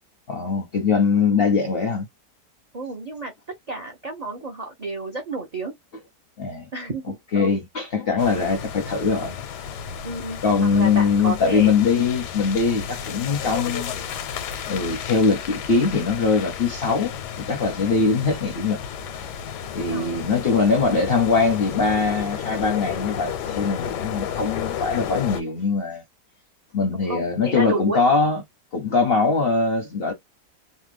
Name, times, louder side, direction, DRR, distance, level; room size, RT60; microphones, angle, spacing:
voice 1, 0.3-2.1 6.4-6.6 7.3-9.4 10.4-13.9 14.7-18.8 19.7-26.0 26.7-28.4 28.7-30.1, left 4 dB, 55° left, 0.6 m, -22 dB
voice 2, 2.7-3.3 3.7-5.7 6.7-7.6 10.0-11.7 18.0-18.3 19.9-20.2 27.0-28.0, right 2 dB, 60° right, 0.4 m, -31 dB
sound 1, 8.2-25.4, left 8 dB, 85° left, 1.2 m, -32 dB
2.8 x 2.2 x 3.2 m
omnidirectional pair, 1.7 m